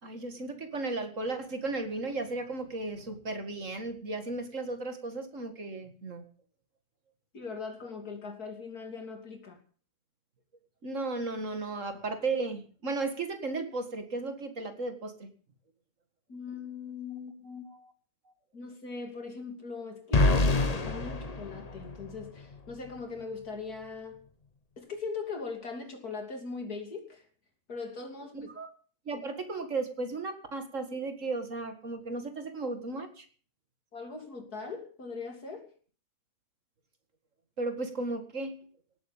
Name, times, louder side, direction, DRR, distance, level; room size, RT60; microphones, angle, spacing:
voice 1, 0.0-6.2 10.8-15.3 17.7-17.9 28.3-28.7 29.1-33.3 37.6-38.6, right 3 dB, 50° right, 7 dB, 2.2 m, -35 dB
voice 2, 7.3-9.6 16.3-17.7 18.5-24.2 24.8-27.2 27.7-28.5 33.9-35.7, left 4 dB, 65° left, 4 dB, 3.4 m, -40 dB
sound 1, 20.1-22.3, left 2 dB, 30° left, 0.9 m, -26 dB
18.0 x 8.9 x 7.2 m, 0.43 s
omnidirectional pair, 1.7 m